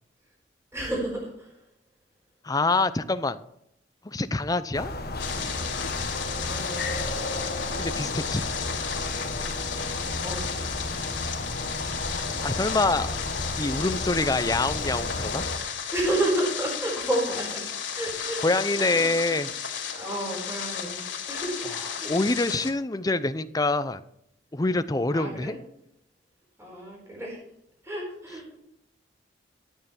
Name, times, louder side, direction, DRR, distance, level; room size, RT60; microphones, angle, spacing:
voice 1, 0.7-1.5 6.5-6.9 10.2-11.0 15.9-17.6 17.9-18.4 18.8-19.4 19.9-21.7 22.0-22.1 25.1-25.6 26.6-27.4 27.8-28.6, right 1 dB, 15° right, -3 dB, 4.3 m, -31 dB
voice 2, 2.4-3.4 4.0-4.9 7.8-8.5 12.4-13.2 13.5-15.5 18.4-19.5 22.0-24.0 24.5-25.6, left 2 dB, 20° left, 12 dB, 0.5 m, -25 dB
sound 1, 4.7-15.6, left 1 dB, 55° left, 1.4 m, -33 dB
sound 2, 5.2-22.7, left 7 dB, 80° left, 2.8 m, -34 dB
13.0 x 9.2 x 4.4 m, 0.76 s
head